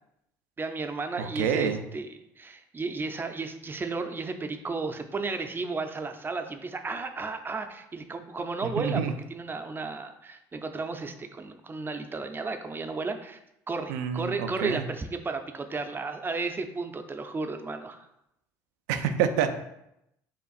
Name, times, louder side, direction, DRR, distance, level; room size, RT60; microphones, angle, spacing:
voice 1, 0.6-9.0 9.3-13.4 13.7-18.1, right 3 dB, 25° right, 6 dB, 0.5 m, -33 dB
voice 2, 1.2-1.8 8.6-9.1 13.9-14.8 18.9-19.6, right 8 dB, 80° right, 7 dB, 0.4 m, -27 dB
6.9 x 2.5 x 2.4 m, 0.82 s
hypercardioid pair, 75°, 9 cm